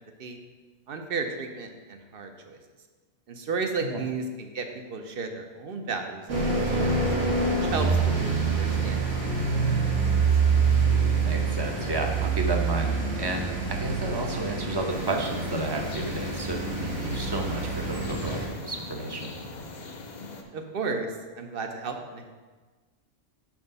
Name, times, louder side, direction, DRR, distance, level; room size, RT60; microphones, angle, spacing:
voice 1, 0.9-2.6 3.3-7.1 7.6-9.9 20.5-22.3, right 4 dB, 55° right, 5 dB, 0.9 m, -34 dB
sound 1, 6.3-18.5, right 4 dB, 80° right, 1.7 m, -26 dB
voice 2, 11.3-19.3, right 1 dB, 25° right, 2 dB, 0.6 m, -32 dB
sound 2, 14.9-20.4, left 2 dB, 45° left, 0.7 m, -40 dB
6.0 x 4.8 x 5.4 m, 1.3 s
omnidirectional pair, 1.2 m